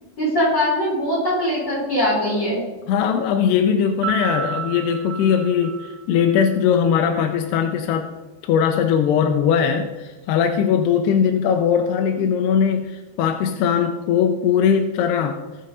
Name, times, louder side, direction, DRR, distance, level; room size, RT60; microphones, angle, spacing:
voice 1, 0.2-2.6, equal, 25° left, -7 dB, 4.9 m, -21 dB
voice 2, 2.9-8.1 8.4-15.4, left 7 dB, 85° left, 5 dB, 2.7 m, -20 dB
Piano, 4.0-6.8, right 8 dB, 80° right, 2.8 m, -31 dB
19.0 x 6.6 x 4.1 m, 1.2 s
omnidirectional pair, 4.8 m